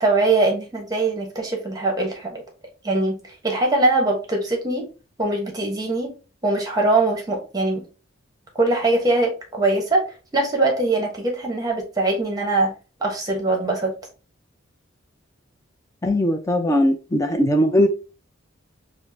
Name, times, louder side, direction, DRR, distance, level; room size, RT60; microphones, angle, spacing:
voice 1, 0.0-2.4 2.8-4.9 5.2-6.1 6.4-7.8 8.6-10.0 10.3-12.7 13.0-13.9, right 2 dB, 20° right, 1 dB, 0.9 m, -22 dB
voice 2, 16.0-17.9, equal, 15° left, 5 dB, 0.4 m, -19 dB
5.2 x 2.1 x 2.6 m, 0.33 s
head